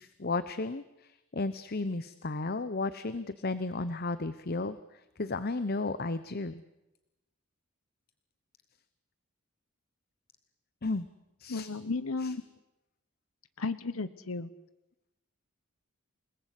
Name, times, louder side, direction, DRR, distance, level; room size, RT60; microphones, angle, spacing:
voice 1, 0.0-6.6 10.8-11.1 11.4-11.7 12.2-12.3, left 3 dB, 45° left, 13 dB, 0.9 m, -34 dB
voice 2, 11.5-12.4 13.6-14.5, left 3 dB, 85° left, 13 dB, 1.1 m, -34 dB
28.5 x 19.0 x 8.4 m, 0.96 s
head